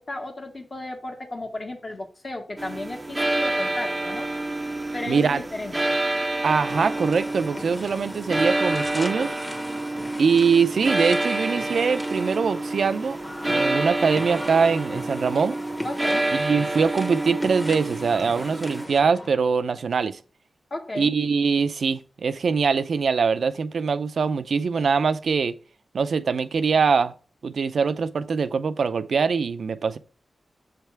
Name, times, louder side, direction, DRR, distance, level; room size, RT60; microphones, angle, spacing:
voice 1, 0.0-4.3 4.9-5.9 15.8-16.3 20.7-21.1, left 2 dB, 45° left, 1.4 m, -34 dB
sound 1, 2.6-18.9, right 2 dB, 20° right, 0.5 m, -28 dB
voice 2, 5.1-5.4 6.4-9.3 10.2-13.2 13.4-15.6 16.3-20.2 21.0-25.5 25.9-27.1 27.4-30.0, right 5 dB, 75° right, 0.5 m, -23 dB
sound 2, 6.7-19.3, left 1 dB, 20° left, 1.2 m, -38 dB
7.3 x 3.4 x 4.6 m
cardioid pair, 70°, 0 cm